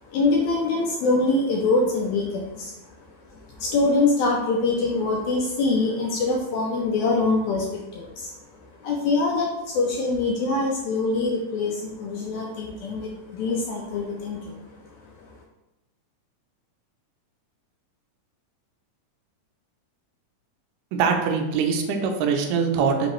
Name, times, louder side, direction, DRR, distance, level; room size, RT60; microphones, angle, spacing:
voice 1, 0.1-2.7 3.3-8.3 8.6-14.7 15.2-15.4, left 3 dB, 80° left, -1 dB, 1.7 m, -24 dB
voice 2, 20.9-23.1, right 5 dB, 85° right, 3 dB, 2.2 m, -23 dB
5.3 x 2.8 x 3.0 m, 0.95 s
omnidirectional pair, 3.8 m